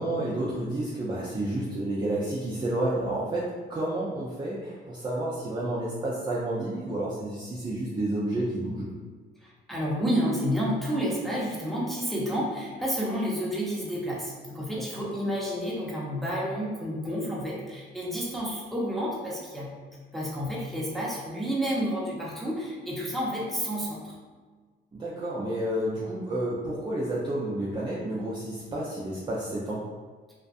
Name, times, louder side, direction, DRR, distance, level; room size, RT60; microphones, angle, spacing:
voice 1, 0.0-8.9 24.9-29.8, right 1 dB, 25° right, -6 dB, 0.4 m, -30 dB
voice 2, 9.4-19.7 20.1-24.1, equal, ahead, -6 dB, 0.7 m, -30 dB
2.5 x 2.3 x 2.3 m, 1.5 s
cardioid pair, 90°, 20 cm